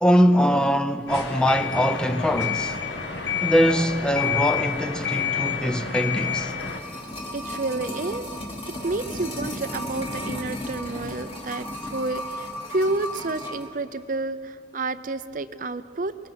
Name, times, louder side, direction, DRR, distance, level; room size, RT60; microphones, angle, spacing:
voice 1, 0.0-2.8 3.4-6.5, equal, 5° left, 0.6 m, -22 dB
sound 1, 1.1-6.8, left 7 dB, 70° left, 1.7 m, -28 dB
sound 2, 6.5-13.7 14.0-14.1, left 1 dB, 30° left, 2.5 m, -34 dB
voice 2, 7.3-8.3 8.7-16.2, right 2 dB, 45° right, 0.6 m, -30 dB
27.0 x 22.0 x 5.9 m
head